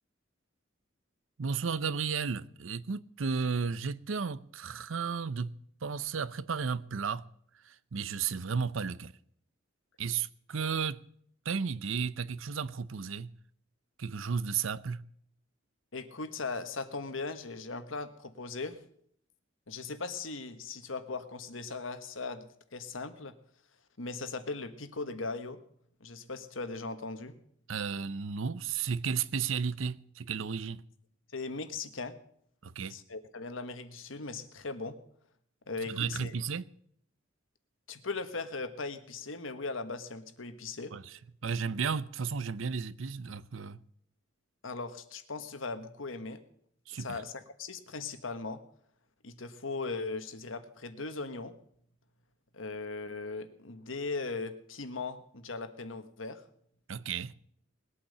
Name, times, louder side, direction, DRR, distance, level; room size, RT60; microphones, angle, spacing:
voice 1, 1.4-5.5 5.8-7.2 7.6-9.1 10.0-11.0 11.4-13.3 14.0-15.0 27.7-30.8 32.6-33.0 35.9-36.7 40.9-43.8 46.9-47.2 56.9-57.3, right 6 dB, 80° right, 0.6 m, -33 dB
voice 2, 15.9-18.8 19.7-23.3 24.0-25.6 26.0-27.3 31.3-32.2 32.9-35.0 35.7-36.3 37.9-40.9 44.6-46.4 46.9-48.6 49.2-51.5 52.5-56.4, left 3 dB, 85° left, 1.4 m, -39 dB
20.0 x 8.7 x 6.7 m
head